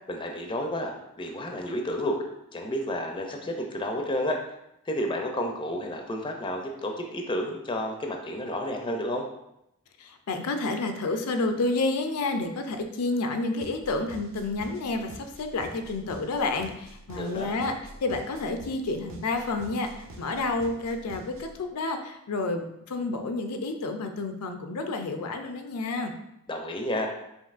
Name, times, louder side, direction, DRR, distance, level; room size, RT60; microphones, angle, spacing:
voice 1, 0.1-2.2 2.5-4.4 4.9-9.2 17.1-17.5 26.5-27.1, left 1 dB, 20° left, 2 dB, 0.4 m, -31 dB
voice 2, 10.0-17.7 18.0-26.1, left 3 dB, 85° left, 6 dB, 0.5 m, -30 dB
sound 1, 13.6-21.6, right 1 dB, 65° right, 0.6 m, -47 dB
5.2 x 3.0 x 2.5 m, 0.83 s
head